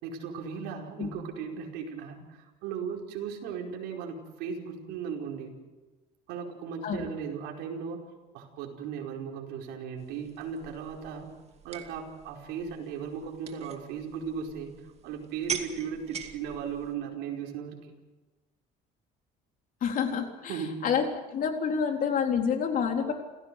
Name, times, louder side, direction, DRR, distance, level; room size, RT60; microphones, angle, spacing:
voice 1, 0.0-5.5 6.3-8.0 8.3-11.3 11.6-17.8 20.5-20.9, right 6 dB, 85° right, 0 dB, 5.0 m, -37 dB
sound 1, 10.0-16.9, right 7 dB, 40° right, 2.4 m, -43 dB
voice 2, 19.8-21.0 21.3-23.1, left 7 dB, 50° left, 3 dB, 4.0 m, -28 dB
29.0 x 16.5 x 6.8 m, 1.2 s
cardioid pair, 125°, 17 cm